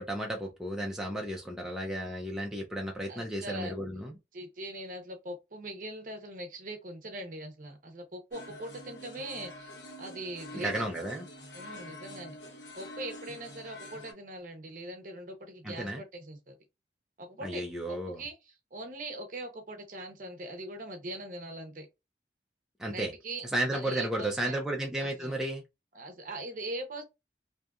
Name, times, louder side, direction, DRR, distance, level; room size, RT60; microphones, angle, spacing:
voice 1, 0.0-4.2 10.5-11.3 15.6-16.0 17.4-18.2 22.8-23.1 23.5-25.6, right 1 dB, 5° right, 0.4 m, -33 dB
voice 2, 3.1-3.7 4.3-11.0 11.5-12.4 12.8-16.5 17.2-21.9 22.9-23.4 23.7-24.6 25.0-25.4 25.9-27.0, right 1 dB, 45° right, 0.6 m, -41 dB
sound 1, 8.3-14.1, left 1 dB, 85° left, 1.0 m, -46 dB
2.7 x 2.4 x 2.2 m
head